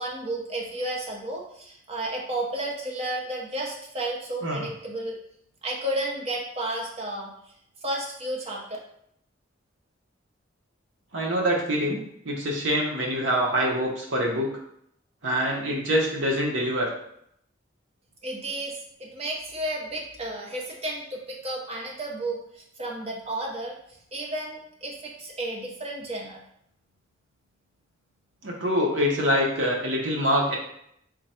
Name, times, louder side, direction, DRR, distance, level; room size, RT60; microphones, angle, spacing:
voice 1, 0.0-5.2 5.6-7.3 7.8-8.6 18.2-23.7 24.1-26.4, right 1 dB, 30° right, -1 dB, 0.8 m, -32 dB
voice 2, 11.1-12.0 12.2-14.5 15.2-16.9 28.4-30.6, equal, 70° right, -1 dB, 0.9 m, -25 dB
3.8 x 2.2 x 4.3 m, 0.72 s
head